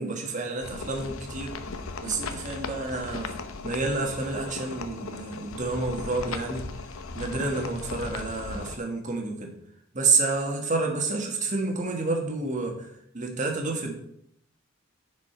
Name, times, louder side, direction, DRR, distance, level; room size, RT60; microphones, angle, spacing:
voice 1, 0.0-1.5 2.0-3.4 3.6-6.7 7.1-9.5 9.9-12.9 13.1-13.9, right 3 dB, 35° right, 2 dB, 1.5 m, -29 dB
sound 1, 0.6-8.8, left 3 dB, 75° left, 0.8 m, -37 dB
10.5 x 5.1 x 4.6 m, 0.71 s
head